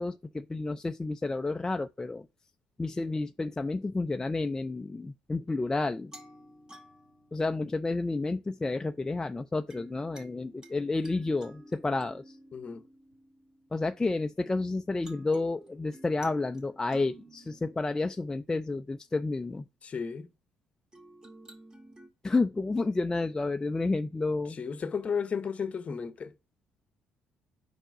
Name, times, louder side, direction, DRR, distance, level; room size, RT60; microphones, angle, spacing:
voice 1, 0.0-2.3 2.8-6.1 7.3-12.4 13.7-19.7 22.2-24.6, left 3 dB, 20° left, 0.4 m, -30 dB
sound 1, 6.1-8.4 9.7-14.5 15.0-19.2 20.9-22.1, right 1 dB, 25° right, 1.9 m, -53 dB
voice 2, 12.5-12.8 19.8-20.3 24.5-26.3, left 6 dB, 40° left, 0.8 m, -33 dB
4.9 x 4.5 x 4.6 m
supercardioid pair, 70°, 3 cm